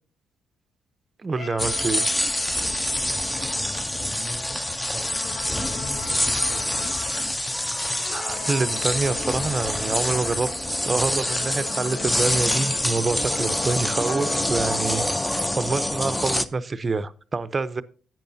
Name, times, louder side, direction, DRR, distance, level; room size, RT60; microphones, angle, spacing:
voice 1, 1.2-2.0 8.1-10.5 10.8-15.0 15.5-17.8, right 4 dB, 30° right, 0.6 m, -26 dB
sound 1, 1.3-4.4 4.8-7.4 8.0-10.6 11.3-15.5, left 8 dB, 65° left, 0.5 m, -40 dB
sound 2, 1.6-16.4, left 1 dB, 10° left, 0.6 m, -26 dB
voice 2, 2.8-4.4 4.9-7.0, left 2 dB, 35° left, 4.1 m, -41 dB
10.5 x 9.0 x 2.6 m
cardioid pair, 90°, 0 cm